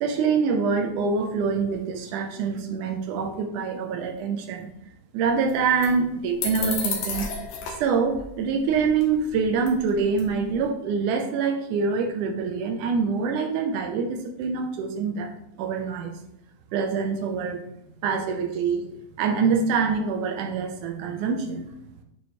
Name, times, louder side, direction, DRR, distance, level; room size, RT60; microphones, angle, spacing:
voice 1, 0.0-4.7 5.1-7.3 7.8-15.3 15.6-16.2 16.7-17.6 18.0-18.9 19.2-21.7, right 5 dB, 85° right, 5 dB, 2.2 m, -25 dB
sound 1, 5.5-5.6 5.8-5.9 6.4-7.9 8.1-8.3 8.7-9.3 9.6-9.9 10.2-10.6, left 5 dB, 80° left, 2.6 m, -31 dB
8.4 x 4.4 x 3.0 m, 0.81 s
omnidirectional pair, 3.6 m